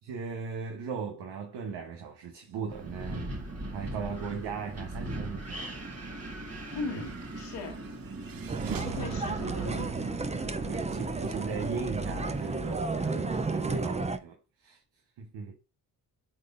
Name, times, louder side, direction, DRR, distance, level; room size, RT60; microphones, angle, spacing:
voice 1, 0.0-3.4 3.7-6.2 7.0-7.1 8.6-9.8 10.6-14.8 15.2-15.5, right 5 dB, 85° right, 1.2 m, -38 dB
Wind, 2.7-13.7, right 2 dB, 35° right, 1.5 m, -40 dB
sound 1, 6.6-12.2, right 7 dB, 55° right, 0.9 m, -43 dB
voice 2, 6.7-7.8 8.8-9.9, left 4 dB, 75° left, 1.7 m, -38 dB
sound 2, 8.5-14.2, right 3 dB, 15° right, 0.6 m, -33 dB
8.9 x 4.1 x 2.6 m
cardioid pair, 60°, 42 cm